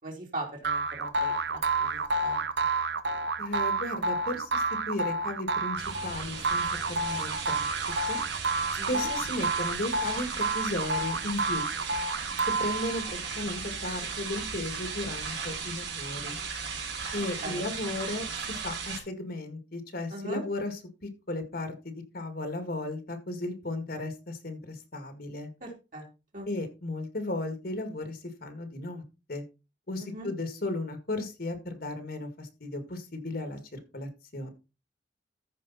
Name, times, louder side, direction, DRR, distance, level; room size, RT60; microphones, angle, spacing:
voice 1, 0.0-2.5 8.8-9.1 13.0-13.2 17.4-17.7 20.1-20.4 25.6-26.0 26.3-26.5 30.0-30.3, right 2 dB, 50° right, -1 dB, 3.1 m, -40 dB
sound 1, 0.6-13.2, right 3 dB, 70° right, 0.9 m, -30 dB
voice 2, 3.4-7.7 8.1-8.2 8.9-11.7 12.6-16.4 17.1-25.5 26.5-29.0 29.3-29.4 29.9-34.5, left 2 dB, 55° left, 8 dB, 2.1 m, -35 dB
sound 2, 5.8-19.0, right 5 dB, 85° right, 4.2 m, -36 dB
14.0 x 5.2 x 4.2 m, 0.29 s
head